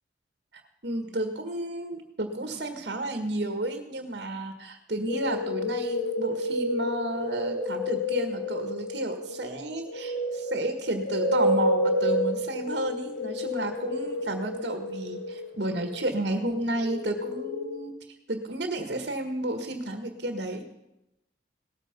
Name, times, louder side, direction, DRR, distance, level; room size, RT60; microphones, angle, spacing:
voice 1, 0.8-17.9 18.3-20.6, right 1 dB, 65° right, 6 dB, 1.7 m, -32 dB
sound 1, 5.1-17.7, left 1 dB, 65° left, 2.1 m, -30 dB
18.5 x 14.0 x 5.4 m, 0.88 s
head